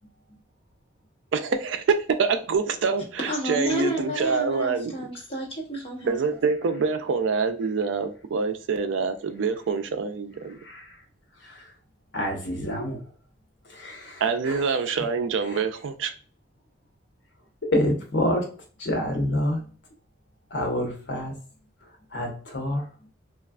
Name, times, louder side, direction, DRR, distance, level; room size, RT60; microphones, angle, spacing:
voice 1, 1.3-4.9 6.0-10.6 14.2-16.1, right 5 dB, 75° right, 0.4 m, -26 dB
voice 2, 3.3-6.2, right 1 dB, 30° left, 1.0 m, -30 dB
voice 3, 10.6-11.0 11.4-11.7 12.1-13.0 13.7-14.6 15.5-15.6 17.7-18.4 18.8-19.6 20.5-21.3 22.1-22.8, left 1 dB, 65° left, 0.9 m, -27 dB
3.3 x 2.4 x 2.3 m
head